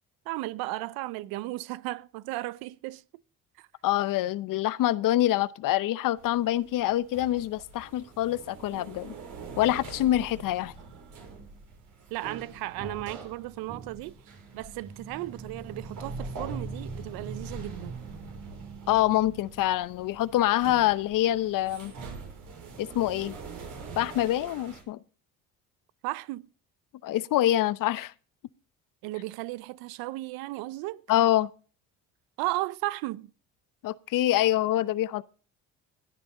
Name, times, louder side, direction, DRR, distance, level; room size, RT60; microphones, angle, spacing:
voice 1, 0.3-3.0 3.6-3.7 12.1-14.1 14.5-17.9 26.0-26.5 29.0-31.0 32.4-33.3, right 18 dB, 80° right, 0.7 m, -35 dB
voice 2, 3.8-9.1 9.6-10.7 18.9-21.9 22.8-23.4 24.0-25.0 27.0-28.1 31.1-31.5 33.8-35.2, left 13 dB, 65° left, 0.8 m, -25 dB
sound 1, 6.2-24.8, right 4 dB, 60° right, 5.6 m, -43 dB
17.0 x 9.7 x 3.8 m
supercardioid pair, 85°, 35 cm